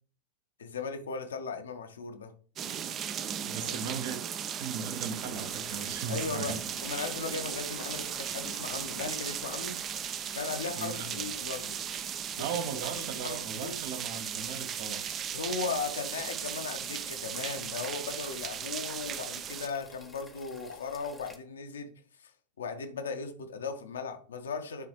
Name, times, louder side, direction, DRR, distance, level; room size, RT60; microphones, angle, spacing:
voice 1, 0.6-2.3 3.6-4.0 6.1-9.8 10.3-11.8 12.4-12.5 13.2-13.8 15.3-21.9 22.2-22.3 22.6-24.9, left 5 dB, 65° left, 7 dB, 0.9 m, -37 dB
sound 1, 2.6-19.7, right 9 dB, 30° right, 0.5 m, -37 dB
voice 2, 3.5-4.2 4.6-6.6 10.8-11.3 12.4-15.0, right 6 dB, 50° right, 9 dB, 0.8 m, -37 dB
sound 2, 5.2-21.4, left 2 dB, 5° left, 0.9 m, -53 dB
9.1 x 3.9 x 3.1 m, 0.43 s
figure-of-eight pair, 90°, 0 cm